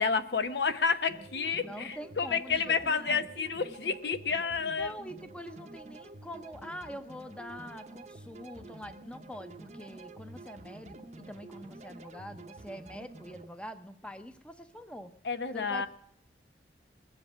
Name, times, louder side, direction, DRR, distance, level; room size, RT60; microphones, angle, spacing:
voice 1, 0.0-4.9 15.2-15.9, left 5 dB, 70° left, 0.9 m, -30 dB
sound 1, 1.1-13.5, right 2 dB, 40° right, 0.8 m, -49 dB
voice 2, 1.6-3.2 4.8-11.0 11.3-15.1 15.5-15.9, equal, 5° left, 0.7 m, -44 dB
21.0 x 7.6 x 6.3 m
head